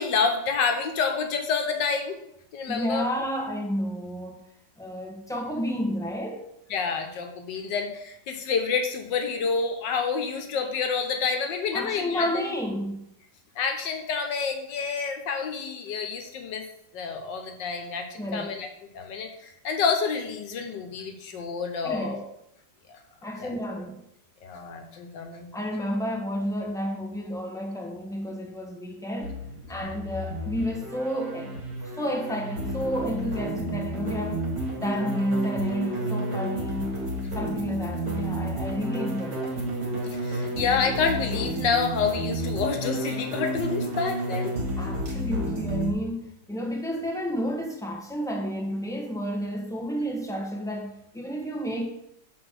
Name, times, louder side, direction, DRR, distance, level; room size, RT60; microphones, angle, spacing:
voice 1, 0.0-2.2 2.5-3.1 6.7-12.3 13.6-16.6 16.9-18.7 18.9-22.2 23.4-23.5 24.4-25.5 40.1-44.5, left 5 dB, 85° left, 5 dB, 1.7 m, -28 dB
voice 2, 2.7-4.4 4.8-6.5 11.7-13.0 18.2-18.5 21.8-22.2 23.2-24.0 25.5-34.4 34.8-36.9 37.3-39.5 44.8-51.9, equal, ahead, -1 dB, 1.0 m, -31 dB
sound 1, 29.2-45.9, right 1 dB, 60° right, 2.1 m, -31 dB
6.0 x 4.2 x 6.4 m, 0.78 s
omnidirectional pair, 1.9 m